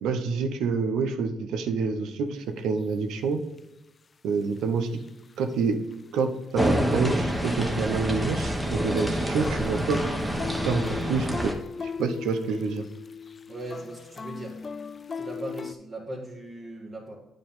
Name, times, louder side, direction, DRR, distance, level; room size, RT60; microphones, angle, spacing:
voice 1, 0.0-3.4 4.2-4.9 5.4-5.8 6.1-10.0 10.7-11.5 11.8-12.8, right 5 dB, 85° right, 8 dB, 0.8 m, -27 dB
sound 1, 2.8-2.9 3.6-3.7 4.4-5.6 5.9-6.2 6.5-8.1 8.4-15.7, left 6 dB, 35° left, 0.3 m, -38 dB
sound 2, 6.5-11.5, equal, 5° right, 1.2 m, -27 dB
voice 2, 13.5-14.6 15.1-17.2, right 1 dB, 40° right, -5 dB, 1.7 m, -38 dB
8.8 x 5.2 x 3.7 m, 1.0 s
cardioid pair, 90°, 0 cm